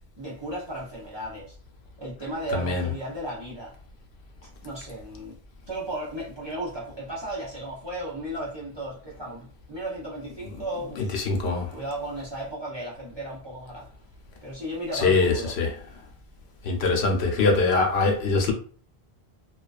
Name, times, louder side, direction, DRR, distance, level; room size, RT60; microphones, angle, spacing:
voice 1, 0.2-1.6 2.0-3.7 4.6-5.4 5.7-11.2 11.7-13.9 14.4-15.6, right 1 dB, 35° right, 0.5 m, -35 dB
voice 2, 2.5-2.9 11.1-11.7 14.9-15.7 16.6-18.5, left 3 dB, 80° left, 0.9 m, -23 dB
2.3 x 2.2 x 2.3 m
omnidirectional pair, 1.0 m